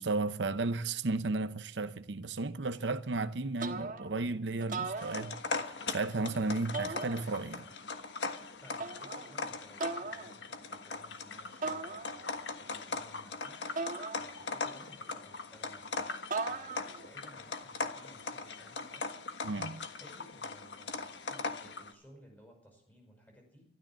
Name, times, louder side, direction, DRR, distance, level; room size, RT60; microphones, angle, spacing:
voice 1, 0.0-7.7 19.4-19.8, right 3 dB, 85° right, 0.8 m, -34 dB
voice 2, 2.5-2.8 8.6-13.9 14.1-16.1 16.4-19.1 19.9-23.7, equal, 10° left, 5.5 m, -58 dB
sound 1, 3.6-4.2 4.6-5.7 6.7-7.6 8.8-9.3 9.8-10.3 11.6-12.5 13.8-14.7 16.3-17.1, right 4 dB, 45° right, 1.4 m, -39 dB
sound 2, 5.0-21.9, left 4 dB, 80° left, 1.4 m, -40 dB
13.0 x 13.0 x 7.5 m
head